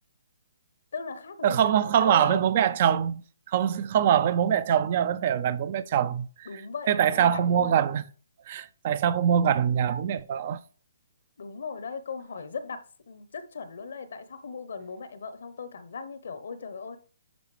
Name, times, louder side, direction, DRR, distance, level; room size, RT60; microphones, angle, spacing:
voice 1, 0.9-2.4 6.5-7.8 11.4-17.0, left 5 dB, 65° left, 0.8 m, -38 dB
voice 2, 1.4-3.2 3.5-6.5 6.9-8.0 8.5-10.6, right 9 dB, 45° right, 0.4 m, -23 dB
10.5 x 4.0 x 3.3 m
hypercardioid pair, 140°, 0 cm